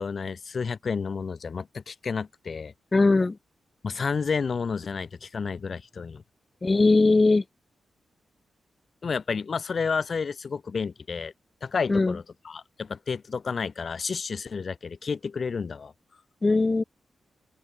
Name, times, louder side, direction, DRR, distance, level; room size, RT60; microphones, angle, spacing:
voice 1, 0.0-2.7 3.8-6.2 9.0-11.3 11.6-15.9, left 5 dB, 50° left, 1.1 m, -31 dB
voice 2, 2.9-3.4 6.6-7.4 11.9-12.2 16.4-16.8, left 3 dB, 30° left, 1.1 m, -20 dB
open air
cardioid pair, 90°, 0 cm